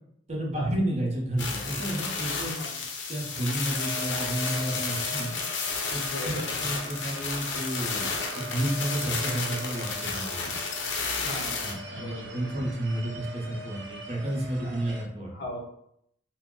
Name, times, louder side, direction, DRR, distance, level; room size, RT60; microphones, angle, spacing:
voice 1, 0.3-2.6 3.1-5.3 5.9-10.5 11.6-15.3, right 1 dB, 40° right, -2 dB, 0.8 m, -31 dB
sound 1, 1.4-11.7, left 4 dB, 90° left, 0.6 m, -32 dB
voice 2, 2.4-2.8 6.0-6.5 11.2-11.6 11.9-12.6 14.6-14.9 15.3-15.6, left 1 dB, 65° left, -2 dB, 0.9 m, -38 dB
sound 2, 3.7-15.1, right 2 dB, 80° right, 0.6 m, -42 dB
2.9 x 2.1 x 3.6 m, 0.72 s
head